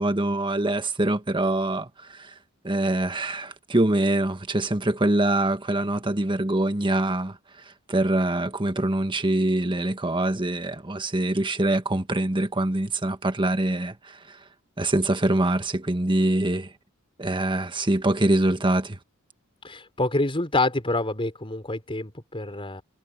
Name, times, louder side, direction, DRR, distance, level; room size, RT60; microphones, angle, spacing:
voice 1, 0.0-2.3 2.6-14.4 14.8-16.7 17.2-19.0, right 1 dB, 25° right, 1.5 m, -24 dB
voice 2, 19.6-22.8, left 2 dB, 25° left, 4.3 m, -27 dB
head